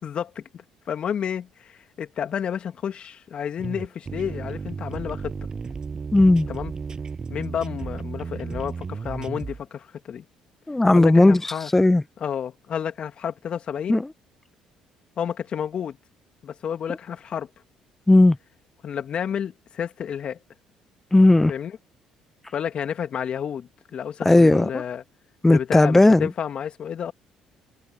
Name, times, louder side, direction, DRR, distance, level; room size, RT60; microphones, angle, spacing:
voice 1, 0.0-5.3 6.5-6.7 7.3-10.2 10.9-11.7 12.2-14.0 15.2-16.0 16.4-17.5 18.8-20.4 21.5-21.7 22.5-25.0 25.5-27.1, left 8 dB, 50° left, 2.6 m, -30 dB
sound 1, 3.6-9.6, right 5 dB, 35° right, 7.2 m, -33 dB
voice 2, 6.1-6.5 10.7-11.4 11.7-12.0 13.9-14.0 18.1-18.4 21.1-21.5 24.3-24.8 25.4-26.3, left 2 dB, 10° left, 0.4 m, -15 dB
hypercardioid pair, 55°, 2 cm